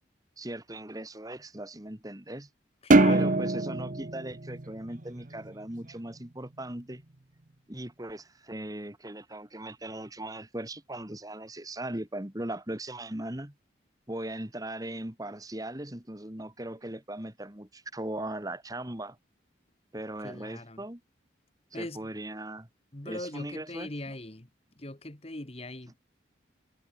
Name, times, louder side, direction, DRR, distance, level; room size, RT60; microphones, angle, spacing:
voice 1, 0.4-2.5 3.1-7.0 7.7-13.5 14.1-19.2 19.9-21.0 21.7-22.7 23.0-23.9, right 1 dB, 20° right, 1.9 m, -39 dB
voice 2, 2.8-3.5 20.2-20.8 21.7-22.1 22.9-24.5 24.8-26.0, left 2 dB, 30° left, 1.7 m, -40 dB
sound 1, 2.9-5.5, right 2 dB, 45° right, 0.9 m, -24 dB
head